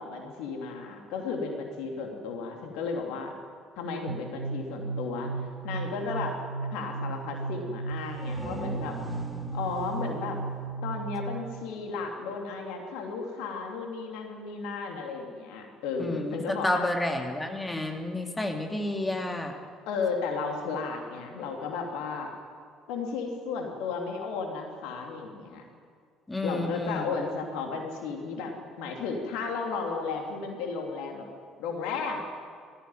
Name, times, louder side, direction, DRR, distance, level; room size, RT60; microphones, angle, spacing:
voice 1, 0.0-3.3 3.8-5.3 5.6-6.3 6.7-9.0 9.5-10.4 10.8-17.0 19.9-22.3 22.9-25.6 26.4-31.3 31.6-32.2, left 4 dB, 65° left, 2 dB, 3.0 m, -34 dB
sound 1, 4.1-11.6, right 4 dB, 90° right, 0.8 m, -35 dB
sound 2, 7.9-11.5, equal, 10° right, 3.1 m, -43 dB
voice 2, 16.0-19.5 26.3-27.1, left 1 dB, 15° left, 3 dB, 2.8 m, -30 dB
21.0 x 15.5 x 9.3 m, 2.2 s
figure-of-eight pair, 55°, 0 cm